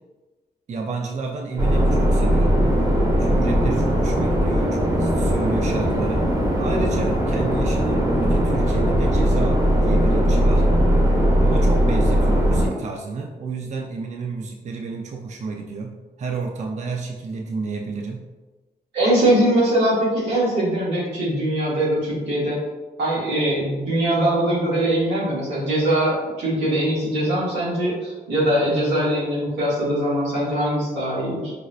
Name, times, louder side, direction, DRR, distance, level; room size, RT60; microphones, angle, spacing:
voice 1, 0.7-2.8 3.2-6.3 6.6-10.6 11.4-18.3, right 4 dB, 40° right, 2 dB, 0.4 m, -31 dB
sound 1, 1.6-12.7, equal, 25° right, 0.9 m, -19 dB
voice 2, 18.9-22.6 23.0-31.5, right 1 dB, 90° right, -7 dB, 1.2 m, -21 dB
4.7 x 2.1 x 2.4 m, 1.2 s
supercardioid pair, 45°, 17 cm